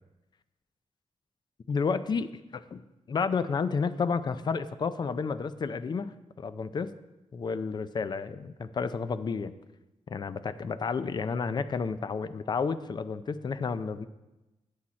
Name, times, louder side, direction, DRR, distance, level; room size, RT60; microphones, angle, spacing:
voice 1, 1.7-2.8 3.1-6.1 6.4-6.9 7.3-9.5 10.1-14.1, left 5 dB, 40° left, 12 dB, 0.4 m, -31 dB
10.0 x 8.4 x 4.3 m, 1.0 s
wide cardioid pair, 165°, 12 cm